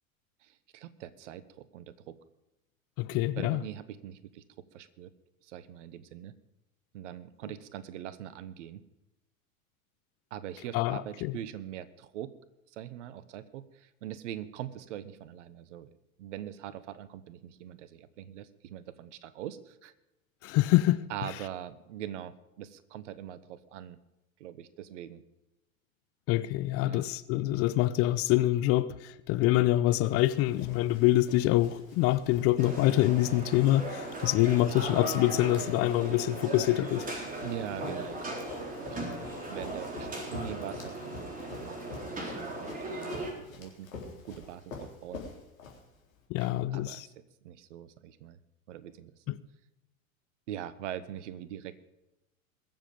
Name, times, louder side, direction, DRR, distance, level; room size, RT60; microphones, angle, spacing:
voice 1, 0.4-2.2 3.4-4.4 4.7-5.1 5.4-6.3 6.9-8.8 10.3-12.3 12.7-15.9 16.2-19.9 21.1-24.0 24.4-25.2 26.8-27.1 37.4-38.5 38.8-41.8 42.0-43.3 43.5-43.9 44.3-45.2 46.4-47.1 47.4-48.4 48.7-49.3 50.5-51.7, right 11 dB, 60° right, 1.2 m, -42 dB
voice 2, 3.0-3.6 10.7-11.3 20.4-21.1 26.3-37.0 46.3-47.1 49.3-49.4, left 15 dB, 35° left, 0.6 m, -26 dB
Run, 30.0-46.2, left 4 dB, 75° left, 3.9 m, -48 dB
sound 1, 32.6-43.3, right 2 dB, 20° right, 3.8 m, -38 dB
22.0 x 7.6 x 5.2 m
figure-of-eight pair, 90°, 41 cm